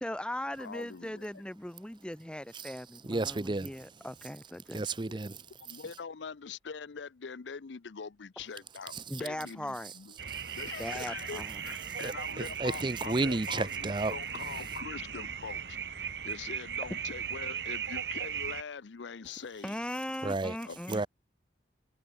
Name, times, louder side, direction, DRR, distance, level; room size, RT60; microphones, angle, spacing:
voice 1, 0.0-4.8 9.1-9.9 10.8-11.6 19.6-21.1, left 1 dB, 5° left, 0.8 m, -39 dB
voice 2, 0.6-1.4 5.6-10.1 10.5-15.8 16.2-19.8 20.7-21.0, left 5 dB, 90° left, 0.6 m, -43 dB
voice 3, 3.0-3.7 4.7-5.8 8.9-9.0 10.3-10.6 12.0-14.1 20.2-20.6 20.9-21.1, right 2 dB, 25° right, 0.6 m, -33 dB
sound 1, 10.2-18.6, right 7 dB, 70° right, 1.4 m, -38 dB
head